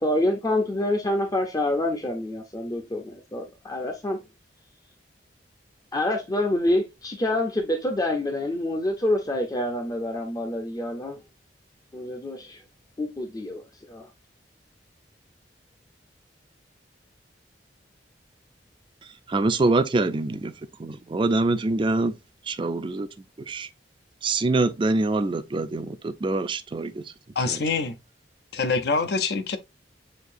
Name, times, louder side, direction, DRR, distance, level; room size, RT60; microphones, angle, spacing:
voice 1, 0.0-4.2 5.9-11.2 11.9-12.6 13.0-13.6 13.9-14.1, left 1 dB, 20° left, 0.6 m, -27 dB
voice 2, 19.3-20.5 20.8-22.1 22.5-23.1 23.5-23.7 24.2-27.0 27.5-27.6, right 2 dB, 30° right, 0.4 m, -24 dB
voice 3, 27.4-28.0 28.5-29.6, left 4 dB, 65° left, 0.6 m, -25 dB
6.5 x 2.7 x 2.6 m
head